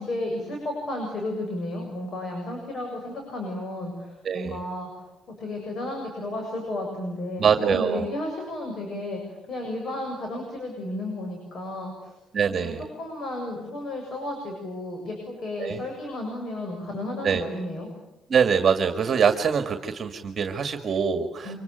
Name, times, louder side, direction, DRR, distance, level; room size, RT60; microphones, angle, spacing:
voice 1, 0.0-12.1 12.5-17.9 21.4-21.6, left 1 dB, 50° left, 2 dB, 7.3 m, -33 dB
voice 2, 4.2-4.6 7.4-8.1 12.3-12.8 15.6-15.8 17.2-17.5 18.3-21.5, right 6 dB, 45° right, 7 dB, 1.9 m, -24 dB
25.0 x 23.5 x 9.3 m, 0.98 s
cardioid pair, 90°, 0 cm